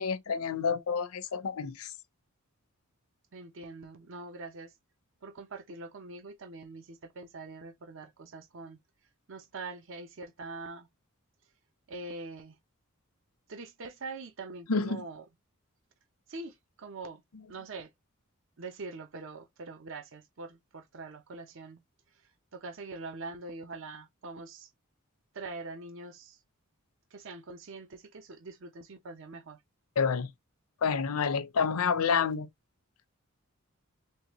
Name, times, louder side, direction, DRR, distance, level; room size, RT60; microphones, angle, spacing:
voice 1, 0.0-1.9 14.7-15.0 30.0-30.3 30.8-32.5, left 5 dB, 75° left, 0.6 m, -29 dB
voice 2, 3.3-4.7 5.2-8.8 9.3-10.9 11.9-12.6 13.5-15.3 16.3-17.2 17.5-17.9 18.6-21.8 22.5-24.7 25.3-26.4 27.1-29.6, right 3 dB, 60° right, 0.7 m, -43 dB
3.7 x 3.2 x 3.0 m
head